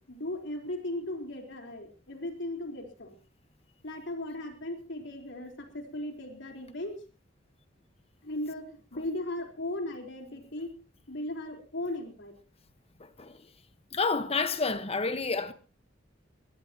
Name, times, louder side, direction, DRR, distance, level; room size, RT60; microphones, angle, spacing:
voice 1, 0.0-3.2 3.8-7.0 8.2-10.7 11.1-12.4, left 1 dB, 65° left, 4.3 m, -37 dB
voice 2, 13.9-15.5, left 4 dB, 30° left, 1.4 m, -29 dB
22.5 x 17.0 x 3.0 m
head